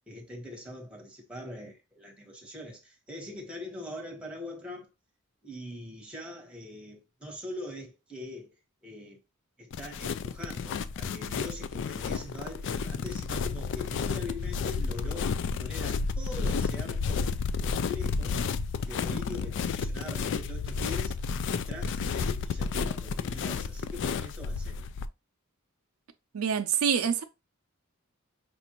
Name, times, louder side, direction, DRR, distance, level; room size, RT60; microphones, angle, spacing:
voice 1, 0.1-4.9 5.4-8.5 8.8-9.2 9.6-18.4 18.8-21.2 21.4-24.9, left 1 dB, 5° right, 1.2 m, -42 dB
sound 1, 9.7-25.1, left 5 dB, 60° left, 0.3 m, -31 dB
voice 2, 26.3-27.2, right 7 dB, 80° right, 0.5 m, -26 dB
5.3 x 2.5 x 2.9 m
head